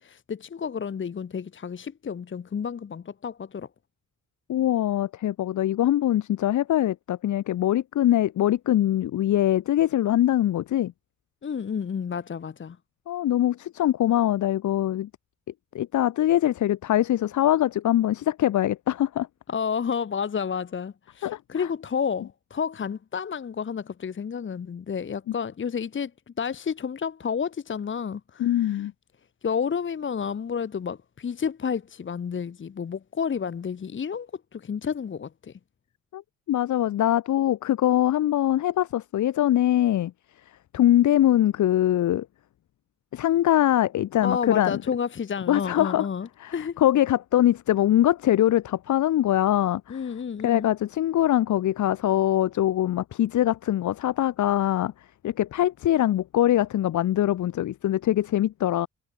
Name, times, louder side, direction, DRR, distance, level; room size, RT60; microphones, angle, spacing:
voice 1, 0.0-3.7 11.4-12.8 19.5-26.1 26.4-28.9 29.4-35.6 44.2-46.8 49.9-50.7, left 6 dB, 40° left, 1.0 m, -30 dB
voice 2, 4.5-10.9 13.1-15.1 15.7-19.3 21.2-21.7 28.4-28.9 36.1-36.2 36.5-40.1 40.7-42.3 43.1-44.8 45.5-46.1 46.4-50.0 50.4-54.9 55.2-58.9, left 12 dB, 80° left, 0.6 m, -23 dB
wide cardioid pair, 140°, 29 cm